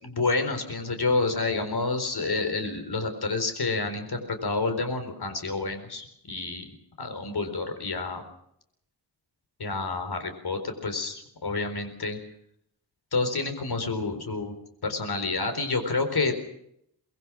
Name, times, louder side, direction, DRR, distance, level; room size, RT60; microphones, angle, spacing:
voice 1, 0.0-6.7 7.0-8.2 9.6-12.2 13.1-14.6 14.8-16.4, left 3 dB, 65° left, 8 dB, 4.3 m, -29 dB
23.5 x 21.5 x 6.3 m, 0.73 s
wide cardioid pair, 90°, 42 cm